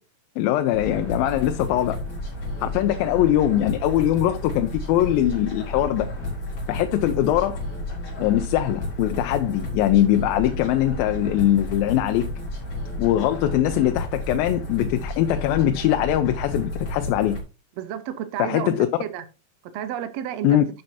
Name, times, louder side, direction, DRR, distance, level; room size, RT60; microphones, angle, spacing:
voice 1, 0.4-2.0 2.6-6.1 6.7-7.6 8.2-12.3 13.0-17.4 18.4-18.9 20.4-20.7, left 12 dB, 90° left, 2.4 m, -21 dB
sound 1, 0.7-17.4, left 1 dB, 35° left, 4.6 m, -32 dB
voice 2, 17.8-19.2 19.7-20.6, right 10 dB, 70° right, 1.7 m, -31 dB
11.5 x 7.7 x 2.8 m
omnidirectional pair, 4.1 m